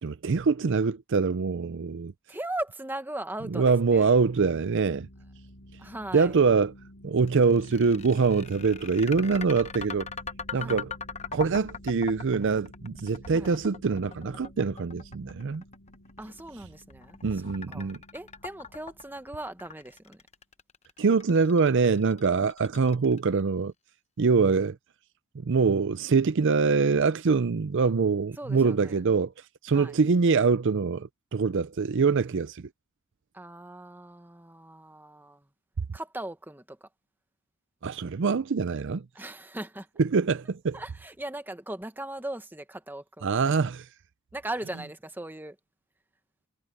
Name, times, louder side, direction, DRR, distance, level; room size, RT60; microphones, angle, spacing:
voice 1, 0.0-2.1 3.5-5.1 6.1-6.7 7.0-10.1 10.5-10.9 11.3-15.6 17.2-18.0 21.0-23.7 24.2-24.8 25.3-29.3 29.6-32.7 37.8-39.0 40.0-40.8 43.2-43.8, right 4 dB, 55° right, 0.5 m, -24 dB
voice 2, 2.3-4.1 5.8-6.4 10.5-10.8 13.3-13.6 16.2-17.2 17.7-20.2 28.4-29.0 29.7-30.0 33.3-35.5 35.9-36.9 39.1-39.9 40.7-43.3 44.3-45.6, right 1 dB, 10° right, 1.2 m, -38 dB
sound 1, 3.8-20.0, equal, 60° left, 6.4 m, -51 dB
sound 2, 7.3-23.4, left 6 dB, 30° left, 0.8 m, -41 dB
head